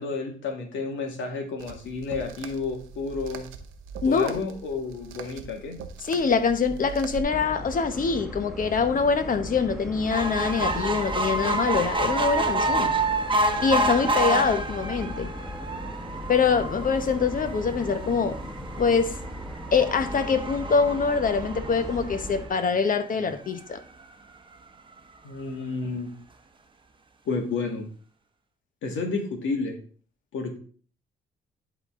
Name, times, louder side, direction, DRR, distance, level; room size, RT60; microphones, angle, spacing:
voice 1, 0.0-3.4 4.0-5.8 25.2-26.1 27.3-27.9 28.8-29.8 30.3-30.6, left 4 dB, 75° left, 1.9 m, -31 dB
sound 1, 1.6-7.2, right 6 dB, 90° right, 0.8 m, -42 dB
voice 2, 4.0-4.4 6.0-13.0 13.6-15.3 16.3-19.2 19.7-23.8, left 5 dB, 45° left, 1.1 m, -24 dB
sound 2, 7.3-22.5, equal, ahead, 1.4 m, -38 dB
sound 3, 10.1-22.7 23.3-23.4 23.7-23.8 24.0-24.1, right 2 dB, 25° right, 0.9 m, -29 dB
11.0 x 4.0 x 3.8 m
cardioid pair, 90°, 20 cm